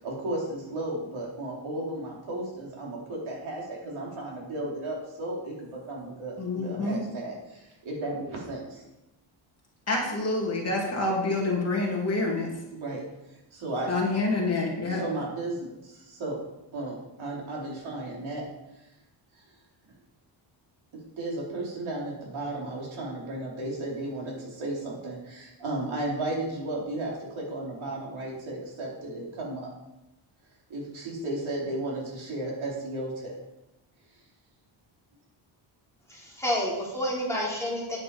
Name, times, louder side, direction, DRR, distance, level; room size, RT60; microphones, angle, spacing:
voice 1, 0.0-8.8 12.7-13.0 13.5-13.9 14.9-16.4 16.7-18.5 21.2-29.7 30.7-33.3, right 2 dB, 70° right, -3 dB, 4.2 m, -34 dB
voice 2, 6.4-7.0 9.9-12.5 13.9-15.0, left 2 dB, 30° left, -2 dB, 2.4 m, -27 dB
voice 3, 36.1-38.0, equal, 5° left, -5 dB, 2.8 m, -29 dB
9.8 x 9.3 x 5.1 m, 0.92 s
wide cardioid pair, 175°, 50 cm